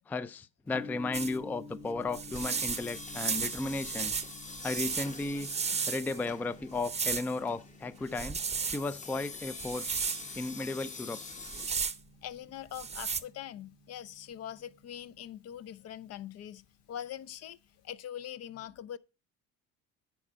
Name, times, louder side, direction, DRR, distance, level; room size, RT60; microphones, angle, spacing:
voice 1, 0.1-4.1 4.6-5.5 5.9-8.4 8.6-10.1 10.3-11.2, left 3 dB, 5° left, 0.3 m, -35 dB
Gong, 0.7-17.9, left 3 dB, 80° left, 2.3 m, -53 dB
sound 1, 1.1-1.4 2.1-6.3 6.8-7.4 8.1-8.8 9.6-10.2 11.3-12.0 12.7-13.2, right 6 dB, 20° right, 0.7 m, -34 dB
sound 2, 2.3-11.7, left 4 dB, 25° left, 1.0 m, -46 dB
voice 2, 12.2-17.6 17.8-19.0, left 10 dB, 50° left, 0.6 m, -43 dB
10.0 x 4.5 x 5.4 m
supercardioid pair, 100°, 32 cm